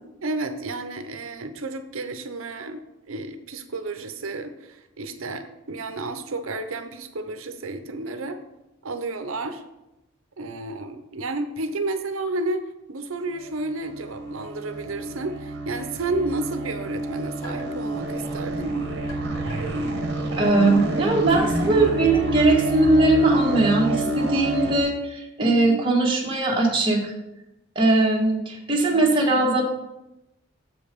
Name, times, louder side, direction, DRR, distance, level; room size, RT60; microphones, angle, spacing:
voice 1, 0.2-2.8 3.1-8.4 8.8-9.6 10.4-12.6 12.9-18.8 25.4-25.8, right 2 dB, 75° right, 8 dB, 0.7 m, -31 dB
sound 1, 13.4-24.8, right 2 dB, 50° right, 1.2 m, -28 dB
sound 2, 17.4-17.8 19.1-19.7 20.6-21.0 22.3-22.4, left 1 dB, 80° left, 2.8 m, -40 dB
voice 2, 20.3-27.0 27.7-29.6, right 2 dB, 25° right, -2 dB, 1.4 m, -20 dB
7.4 x 5.2 x 5.1 m, 0.92 s
head